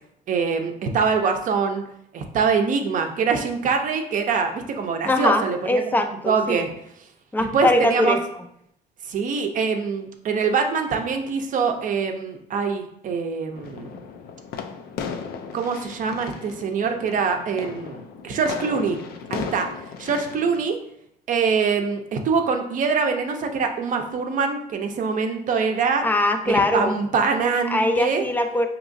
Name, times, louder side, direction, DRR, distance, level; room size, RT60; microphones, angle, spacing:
voice 1, 0.3-1.8 2.1-5.8 6.3-6.7 7.5-8.2 9.1-13.9 15.5-19.0 19.3-19.7 20.0-20.8 21.3-26.1 26.5-28.2, right 5 dB, 50° right, 5 dB, 0.6 m, -24 dB
voice 2, 5.0-6.6 7.3-8.2 26.0-26.9 27.7-28.7, left 1 dB, 10° left, 6 dB, 0.4 m, -21 dB
sound 1, 13.5-20.6, left 6 dB, 70° left, 0.4 m, -36 dB
4.7 x 2.9 x 2.6 m, 0.75 s
cardioid pair, 110°, 17 cm